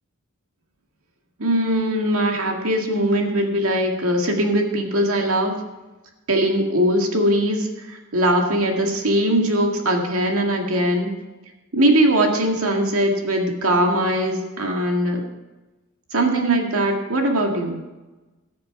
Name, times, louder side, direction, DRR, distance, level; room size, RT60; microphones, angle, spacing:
voice 1, 1.4-5.6 6.3-11.1 11.7-15.2 16.1-17.8, right 1 dB, 80° right, 2 dB, 2.0 m, -20 dB
18.5 x 7.3 x 4.7 m, 1.1 s
head